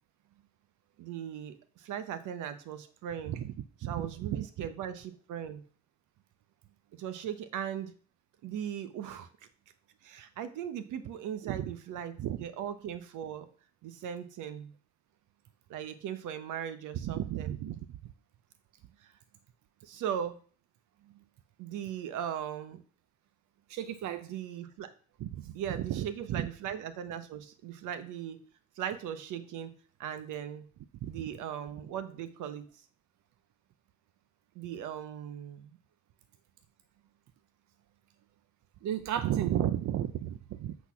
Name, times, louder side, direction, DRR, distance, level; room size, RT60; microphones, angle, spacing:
voice 1, 1.0-3.4 3.8-5.6 6.9-7.9 8.4-9.3 10.0-13.5 13.8-14.7 15.7-17.5 19.0-19.1 19.8-20.4 21.6-22.8 24.2-24.9 25.5-28.4 28.8-29.7 30.0-30.6 31.0-32.8 34.5-35.8, right 9 dB, 90° right, 11 dB, 1.0 m, -38 dB
voice 2, 3.8-4.7 11.4-11.7 12.2-12.4 17.0-18.0 23.7-24.3 25.2-26.5 31.0-31.2 38.8-40.8, right 11 dB, 70° right, 10 dB, 0.6 m, -33 dB
8.3 x 4.2 x 5.8 m, 0.41 s
cardioid pair, 90°, 30 cm